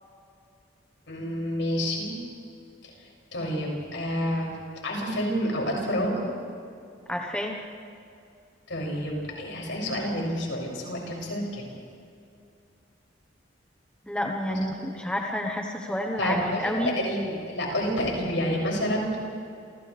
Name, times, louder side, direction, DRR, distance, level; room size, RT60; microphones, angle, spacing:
voice 1, 1.1-2.1 2.8-2.9 3.3-4.5 4.8-6.2 8.7-11.6 14.5-14.6 16.2-19.2, equal, 75° left, -2 dB, 7.0 m, -29 dB
voice 2, 7.1-7.6 14.0-17.0, left 1 dB, 5° left, 1 dB, 1.2 m, -29 dB
29.5 x 29.0 x 3.5 m, 2.5 s
head